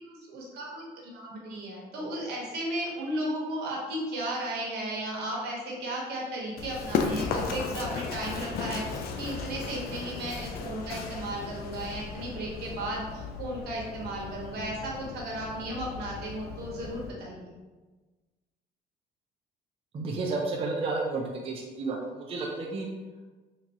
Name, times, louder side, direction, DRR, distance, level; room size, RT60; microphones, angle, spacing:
voice 1, 0.0-17.5, right 1 dB, 75° right, -3 dB, 1.1 m, -35 dB
Run, 6.6-17.1, left 5 dB, 65° left, 0.4 m, -35 dB
voice 2, 19.9-22.9, right 3 dB, 35° right, -1 dB, 0.5 m, -31 dB
3.5 x 2.9 x 2.9 m, 1.3 s
cardioid pair, 110°, 17 cm